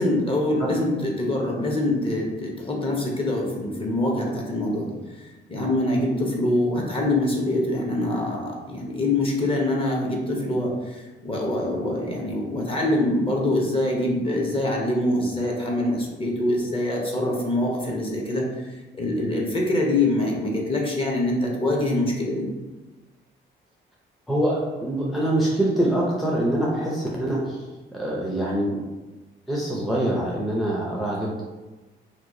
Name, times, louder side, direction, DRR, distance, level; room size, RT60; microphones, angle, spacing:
voice 1, 0.0-4.9 5.2-18.7 19.0-22.4, left 1 dB, 25° left, -1 dB, 0.9 m, -24 dB
voice 2, 24.3-27.6 27.9-28.8 29.5-31.4, right 1 dB, ahead, -4 dB, 0.6 m, -24 dB
3.0 x 2.3 x 3.7 m, 1.2 s
cardioid pair, 90°, 20 cm